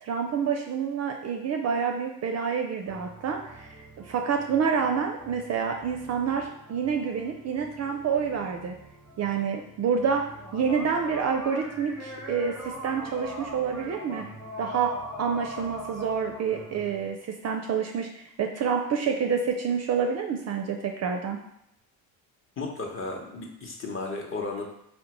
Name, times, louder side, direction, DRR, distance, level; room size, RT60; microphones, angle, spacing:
voice 1, 0.0-8.7 9.2-10.3 10.5-14.3 14.6-14.9 15.2-21.4, right 6 dB, 40° right, 3 dB, 0.4 m, -28 dB
sound 1, 2.8-17.1, equal, 5° right, 0.8 m, -43 dB
voice 2, 22.6-24.6, left 3 dB, 30° left, 0 dB, 0.8 m, -34 dB
3.7 x 2.1 x 2.9 m, 0.78 s
supercardioid pair, 70°, 42 cm